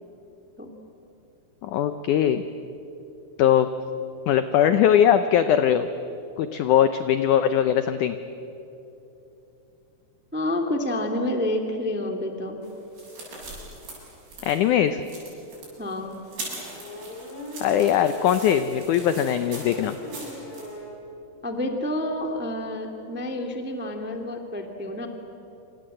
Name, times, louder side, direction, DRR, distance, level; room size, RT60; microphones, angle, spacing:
voice 1, 1.6-2.4 3.4-3.7 4.3-5.9 6.4-8.2 14.4-15.0 17.6-20.0, left 10 dB, 85° left, 10 dB, 1.7 m, -20 dB
voice 2, 10.3-12.6 15.8-16.2 21.4-25.1, left 1 dB, 10° right, 4 dB, 0.7 m, -29 dB
sound 1, 12.6-20.7, right 2 dB, 85° right, 9.8 m, -41 dB
sound 2, 15.5-15.6 16.7-21.0 21.4-21.5 21.7-21.8 22.0-22.3, left 1 dB, 45° left, 8.1 m, -40 dB
27.5 x 27.0 x 7.8 m, 3.0 s
omnidirectional pair, 4.6 m